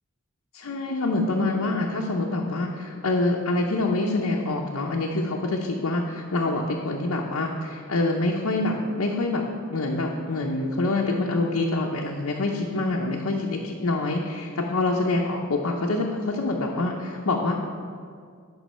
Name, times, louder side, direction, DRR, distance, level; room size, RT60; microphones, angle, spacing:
voice 1, 0.5-9.4 9.7-17.6, left 2 dB, 90° left, -1 dB, 0.7 m, -26 dB
9.1 x 5.3 x 5.4 m, 2.1 s
head